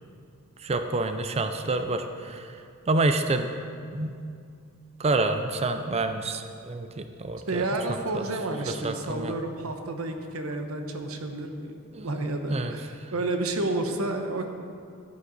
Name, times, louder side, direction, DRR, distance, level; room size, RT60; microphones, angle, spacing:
voice 1, 0.6-2.5 2.9-3.5 3.9-4.1 5.0-7.6 8.1-8.2 8.7-9.3 11.9-12.1 12.5-12.7, right 2 dB, 30° right, 7 dB, 0.5 m, -28 dB
voice 2, 7.5-11.7 12.0-14.5, right 2 dB, 90° right, 5 dB, 1.0 m, -30 dB
14.5 x 8.5 x 4.0 m, 2.4 s
head